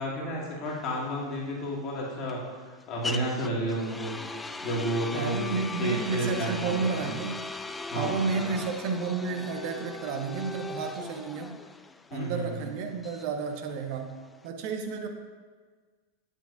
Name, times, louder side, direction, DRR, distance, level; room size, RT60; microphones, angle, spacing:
voice 1, 0.0-2.4 2.9-4.2 4.6-7.1 7.9-8.1 8.5-8.6 12.1-12.6, right 1 dB, 30° left, -4 dB, 2.0 m, -31 dB
sound 1, 0.7-14.5, left 2 dB, 10° left, 0.3 m, -39 dB
voice 2, 5.1-7.5 8.0-11.6 12.1-14.2 14.4-15.1, right 4 dB, 45° right, 5 dB, 0.7 m, -31 dB
9.1 x 7.2 x 2.6 m, 1.5 s
figure-of-eight pair, 90°, 0 cm